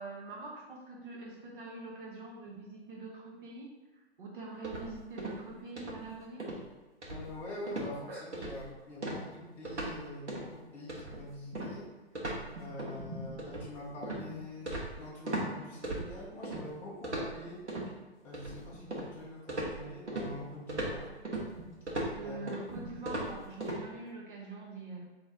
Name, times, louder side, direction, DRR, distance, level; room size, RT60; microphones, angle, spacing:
voice 1, 0.0-3.7 4.2-6.5 8.1-8.2 16.3-16.4 22.1-25.0, right 3 dB, 50° right, -2 dB, 1.0 m, -44 dB
sound 1, 4.6-5.5 5.8-6.1 6.4-6.6 7.0-7.4 7.7-7.9 8.3-8.7 9.0-10.0 10.3-10.5 10.9-15.5 15.8-16.6 17.0-17.9 18.3-19.2 19.5-23.8, right 1 dB, 85° right, 1.3 m, -38 dB
voice 2, 7.1-11.9 12.6-17.6 18.2-21.1 22.2-22.4, left 1 dB, 5° left, -5 dB, 0.4 m, -45 dB
4.1 x 3.0 x 3.6 m, 1.2 s
figure-of-eight pair, 130°, 33 cm